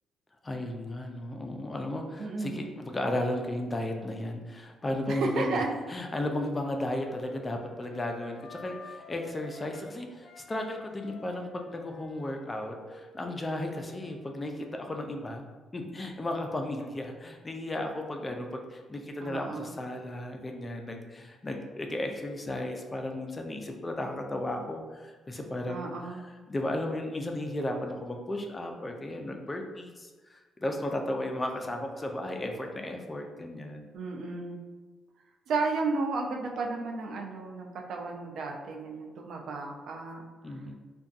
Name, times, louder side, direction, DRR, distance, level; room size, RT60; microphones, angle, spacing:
voice 1, 0.4-5.6 5.9-15.4 15.7-33.9 40.4-40.7, left 1 dB, 25° left, 3 dB, 0.3 m, -34 dB
voice 2, 2.2-2.6 5.1-5.7 19.2-19.7 25.7-26.3 33.9-34.6 35.5-40.6, right 3 dB, 70° right, 1 dB, 0.4 m, -33 dB
Wind instrument woodwind instrument, 6.6-9.9 10.2-14.7, left 1 dB, 90° left, 0.5 m, -52 dB
2.5 x 2.2 x 2.4 m, 1.3 s
cardioid pair, 90°, 0 cm